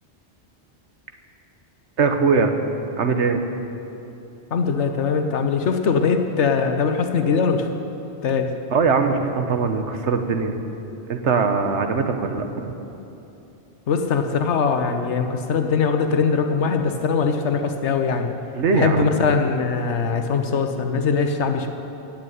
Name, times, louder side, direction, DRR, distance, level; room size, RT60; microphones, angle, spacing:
voice 1, 2.0-2.5 3.0-3.4 8.7-10.6 11.1-12.7 18.5-19.2, right 5 dB, 85° right, 6 dB, 1.4 m, -21 dB
voice 2, 4.5-7.7 8.2-8.5 13.9-18.3 18.7-21.7, left 5 dB, 90° left, 5 dB, 1.2 m, -21 dB
15.5 x 7.5 x 9.7 m, 2.9 s
omnidirectional pair, 1.1 m